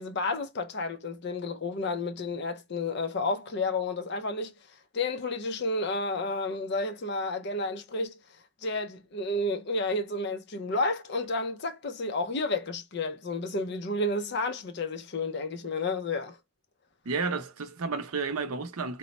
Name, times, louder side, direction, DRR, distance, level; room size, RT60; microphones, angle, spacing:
voice 1, 0.0-4.5 4.9-8.2 8.6-16.4, left 2 dB, 50° left, 0.5 m, -31 dB
voice 2, 17.0-19.0, right 4 dB, 85° right, 0.6 m, -32 dB
2.9 x 2.1 x 4.1 m
head